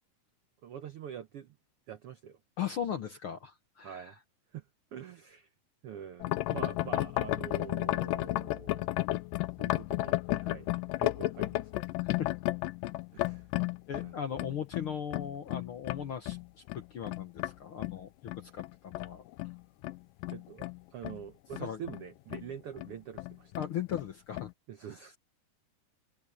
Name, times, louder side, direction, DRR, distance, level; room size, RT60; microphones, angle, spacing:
voice 1, 0.6-1.6 1.9-2.4 3.8-4.2 4.5-4.6 4.9-5.5 5.8-9.0 9.6-11.8 13.1-13.5 14.0-14.6 20.3-23.5 24.7-25.2, right 8 dB, 75° right, 1.3 m, -45 dB
voice 2, 2.6-4.1 12.0-12.3 13.9-16.4 16.7-19.2 21.6-21.8 23.6-24.5, left 9 dB, 65° left, 1.4 m, -38 dB
sound 1, 6.2-17.5 17.8-21.2 21.5-22.0 22.3-22.5 22.8-22.9 23.2-24.1 24.4-24.5, left 18 dB, 90° left, 2.3 m, -33 dB
omnidirectional pair, 3.8 m